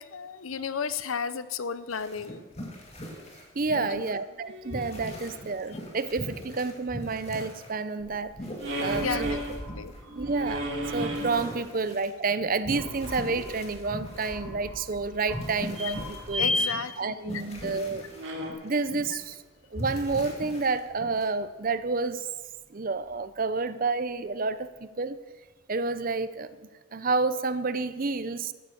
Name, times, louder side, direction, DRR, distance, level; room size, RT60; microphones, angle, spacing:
voice 1, 0.0-2.4 3.7-4.1 9.0-9.9 16.4-17.4, left 6 dB, 85° left, 15 dB, 0.7 m, -34 dB
sound 1, 1.9-4.1 4.6-7.7 8.0-10.0 10.3-10.5 10.9-14.7 15.3-17.0 17.2-19.3 19.7-21.2, equal, 30° left, 2.6 m, -40 dB
voice 2, 3.5-8.4 8.8-9.4 10.2-16.5 17.0-18.0 18.6-19.4 19.7-22.3 22.7-25.2 25.7-28.5, right 4 dB, 45° right, 14 dB, 0.7 m, -30 dB
sound 2, 4.3-5.0 8.6-9.6 10.1-11.5 14.6-14.7 15.7-16.7 18.1-18.5, left 1 dB, 65° right, 2.7 m, -31 dB
sound 3, 8.0-11.9 12.4-16.3, equal, 10° left, 5.0 m, -44 dB
14.5 x 9.6 x 7.1 m, 1.2 s
head